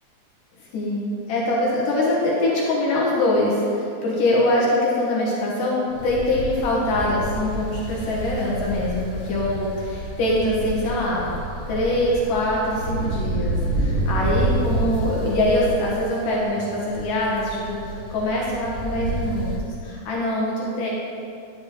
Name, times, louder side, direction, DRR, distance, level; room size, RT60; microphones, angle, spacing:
voice 1, 0.7-11.3 11.7-20.9, left 1 dB, 70° left, -5 dB, 2.8 m, -23 dB
sound 1, 5.9-19.6, right 2 dB, ahead, 1.0 m, -29 dB
10.0 x 9.3 x 3.3 m, 2.6 s
omnidirectional pair, 4.1 m